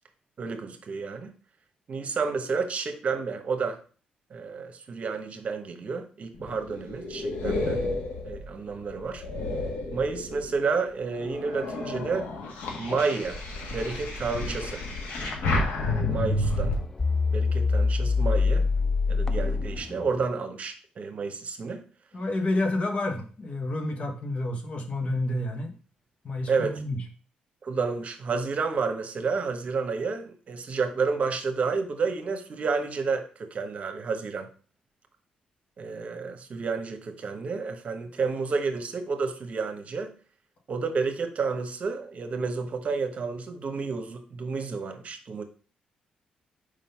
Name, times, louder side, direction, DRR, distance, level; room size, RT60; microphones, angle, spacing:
voice 1, 0.4-1.3 1.9-3.8 4.3-7.8 8.2-9.2 9.9-12.3 12.8-13.4 13.7-14.8 15.8-16.8 17.3-18.7 19.1-21.8 26.5-26.8 27.6-34.5 35.8-40.1 40.7-45.4, right 4 dB, 50° right, 7 dB, 1.0 m, -30 dB
sound 1, 6.3-10.6 11.1-16.7, left 2 dB, 85° left, 1.5 m, -31 dB
sound 2, 15.2-15.5 16.1-16.3 16.6-16.7 17.0-20.2, left 4 dB, 20° left, 0.3 m, -25 dB
voice 2, 22.1-25.7 26.2-27.0, left 2 dB, 45° left, 5 dB, 1.3 m, -29 dB
5.0 x 3.8 x 5.6 m, 0.40 s
cardioid pair, 85°, 3 cm